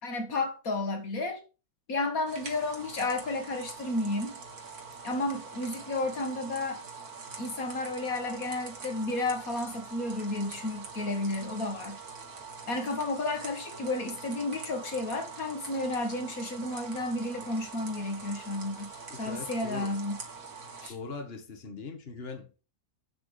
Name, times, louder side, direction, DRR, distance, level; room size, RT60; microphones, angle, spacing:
voice 1, 0.0-1.4 1.9-4.4 5.0-6.8 7.4-12.0 12.7-18.9 19.2-20.2 20.8-20.9, left 2 dB, 70° left, 2.1 m, -32 dB
sound 1, 2.3-20.9, right 5 dB, 80° right, 2.6 m, -44 dB
voice 2, 18.8-19.9 20.9-22.6, left 3 dB, 40° left, 1.9 m, -41 dB
9.1 x 6.3 x 5.1 m
omnidirectional pair, 1.6 m